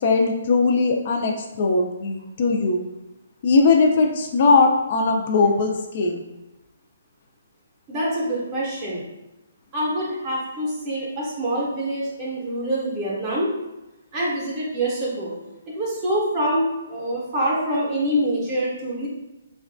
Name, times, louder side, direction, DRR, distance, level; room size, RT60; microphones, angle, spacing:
voice 1, 0.0-2.8 3.4-6.2, left 3 dB, 40° left, 2 dB, 0.3 m, -19 dB
voice 2, 7.9-9.0 9.7-13.5 14.1-15.3 15.7-19.1, right 1 dB, 20° right, -5 dB, 0.6 m, -25 dB
3.9 x 2.2 x 2.5 m, 1.0 s
hypercardioid pair, 165°, 0 cm